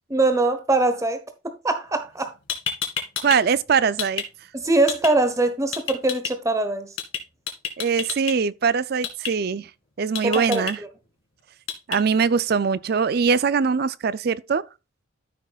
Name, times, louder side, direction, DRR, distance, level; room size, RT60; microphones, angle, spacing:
voice 1, 0.1-2.3 4.5-6.9 10.2-10.9, right 2 dB, 15° right, 1.1 m, -22 dB
sound 1, 2.2-2.3 2.5-3.4 3.7-4.3 4.9-5.1 5.7-6.3 7.0-7.2 7.5-8.3 9.0-9.3 10.2-10.7 11.7-12.0, left 8 dB, 75° left, 2.1 m, -28 dB
voice 2, 3.2-4.2 7.8-9.7 10.0-10.8 11.9-14.6, right 5 dB, 50° right, 0.4 m, -22 dB
13.5 x 6.1 x 2.4 m
head